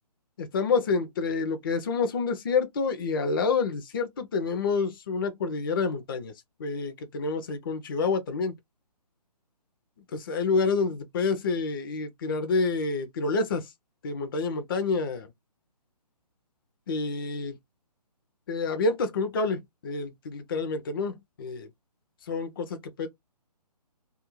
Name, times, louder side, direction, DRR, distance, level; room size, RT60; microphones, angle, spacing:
voice 1, 0.4-6.3 6.6-8.5 10.2-13.7 14.0-15.3 16.9-17.5 18.5-21.7 22.3-23.1, left 4 dB, 35° left, 0.4 m, -28 dB
2.4 x 2.3 x 2.9 m
figure-of-eight pair, 140°, 21 cm